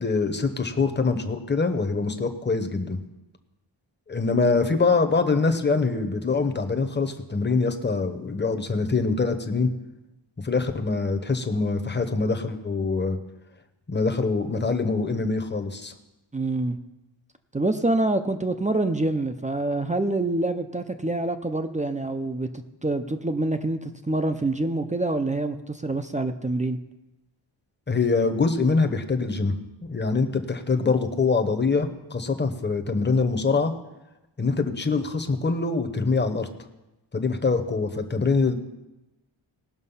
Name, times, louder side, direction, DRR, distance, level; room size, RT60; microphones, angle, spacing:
voice 1, 0.0-3.0 4.1-9.7 10.4-13.2 13.9-15.9 27.9-29.5 29.9-33.7 34.4-36.5 37.1-38.6, left 4 dB, 25° left, 7 dB, 0.9 m, -24 dB
voice 2, 16.3-16.8 17.5-22.5 22.8-26.8, right 2 dB, 15° right, 8 dB, 0.5 m, -26 dB
19.0 x 6.3 x 5.6 m, 0.98 s
wide cardioid pair, 135°, 47 cm